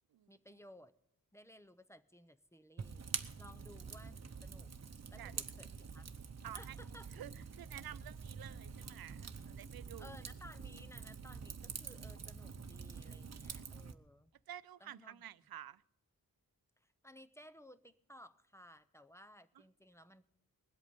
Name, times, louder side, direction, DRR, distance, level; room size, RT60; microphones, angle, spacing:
voice 1, 0.3-0.9 1.3-3.1 3.4-4.7 5.1-6.1 6.5-7.1 10.0-14.3 14.8-15.2 16.8-20.3, equal, 10° left, 0.6 m, -58 dB
Fire, 2.8-13.9, right 5 dB, 50° right, 0.8 m, -46 dB
voice 2, 6.4-6.8 7.1-10.1 14.5-15.8, right 11 dB, 90° right, 0.5 m, -51 dB
20.5 x 8.2 x 5.2 m
wide cardioid pair, 110°, 35 cm